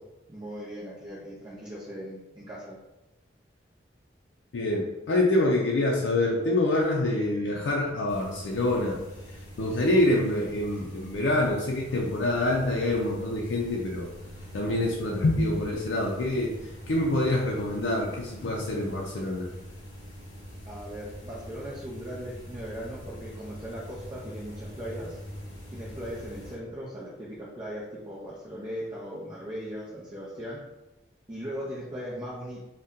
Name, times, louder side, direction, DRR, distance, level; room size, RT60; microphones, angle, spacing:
voice 1, 0.3-2.8 20.6-25.2 25.7-30.6 31.3-32.6, equal, 25° right, -6 dB, 0.4 m, -38 dB
voice 2, 4.5-9.0 9.6-14.1 14.5-16.5 16.9-19.5, left 1 dB, 85° left, -2 dB, 0.4 m, -26 dB
sound 1, 8.1-26.5, equal, 20° left, 0.8 m, -44 dB
2.7 x 2.2 x 3.5 m, 1.0 s
head